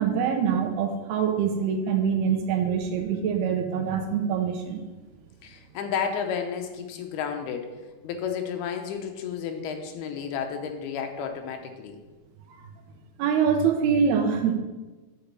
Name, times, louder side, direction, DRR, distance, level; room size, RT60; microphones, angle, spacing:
voice 1, 0.0-4.8 13.2-14.5, right 7 dB, 80° right, 5 dB, 2.8 m, -24 dB
voice 2, 5.4-12.0, left 7 dB, 80° left, 5 dB, 2.7 m, -32 dB
8.5 x 5.2 x 7.3 m, 1.2 s
omnidirectional pair, 4.7 m